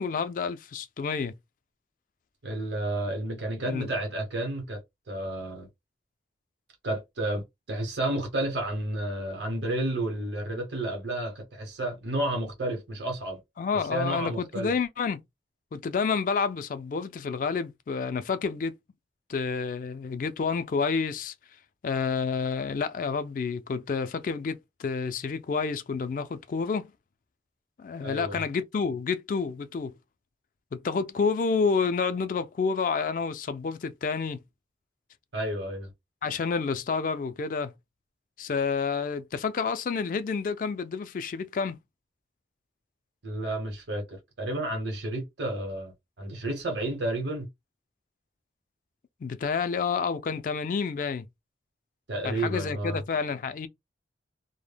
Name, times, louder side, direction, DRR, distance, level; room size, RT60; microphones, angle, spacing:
voice 1, 0.0-1.3 3.6-3.9 13.6-15.2 15.7-18.7 19.3-21.3 21.8-26.9 27.8-30.0 30.7-34.4 36.2-37.7 38.4-41.8 49.2-51.3 52.2-53.7, left 5 dB, 45° left, 0.3 m, -29 dB
voice 2, 2.4-4.8 5.1-5.7 6.8-13.4 13.9-14.7 28.0-28.4 35.3-35.9 43.2-47.5 52.1-53.0, right 1 dB, 75° right, 0.8 m, -31 dB
2.1 x 2.0 x 3.2 m
head